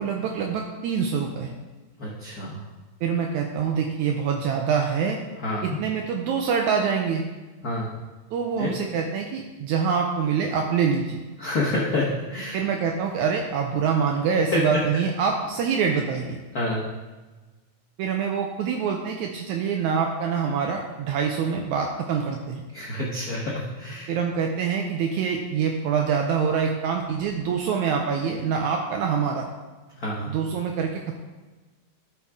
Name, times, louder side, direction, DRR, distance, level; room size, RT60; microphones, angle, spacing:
voice 1, 0.0-1.5 3.0-5.2 5.6-7.2 8.3-11.2 12.5-16.4 18.0-22.6 24.1-29.5 30.3-31.1, right 6 dB, 75° right, 2 dB, 2.0 m, -25 dB
voice 2, 2.0-2.7 5.4-5.8 7.6-7.9 8.6-8.7 11.4-12.6 14.5-14.9 16.5-16.9 22.7-24.1 30.0-30.4, left 1 dB, 60° left, -5 dB, 0.9 m, -28 dB
13.0 x 5.6 x 3.6 m, 1.2 s
omnidirectional pair, 3.5 m